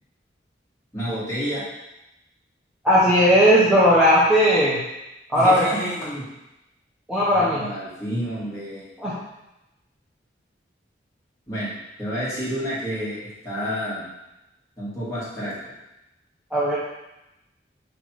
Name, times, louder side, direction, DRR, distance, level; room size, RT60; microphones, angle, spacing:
voice 1, 0.9-1.6 5.3-6.2 7.2-8.9 11.5-14.1 14.8-15.7, equal, 15° left, -10 dB, 2.3 m, -30 dB
voice 2, 2.8-4.8 5.3-5.7 7.1-7.7 9.0-9.1 16.5-16.8, equal, 5° right, -10 dB, 1.0 m, -17 dB
5.3 x 4.2 x 4.7 m, 0.94 s
head